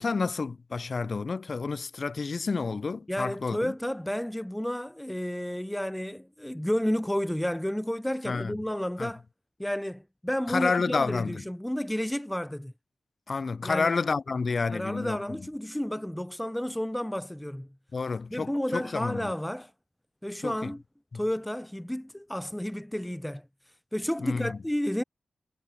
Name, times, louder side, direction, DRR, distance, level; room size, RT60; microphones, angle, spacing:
voice 1, 0.0-3.7 8.3-8.5 9.0-9.1 10.5-11.3 13.3-15.2 17.9-19.3 20.4-20.7 24.2-24.6, left 4 dB, 45° left, 0.9 m, -29 dB
voice 2, 3.1-9.2 9.6-12.7 13.6-13.9 14.7-17.7 18.3-19.7 20.2-20.8 21.1-23.5 23.9-25.0, equal, 5° left, 5.4 m, -31 dB
wide cardioid pair, 135°, 0 cm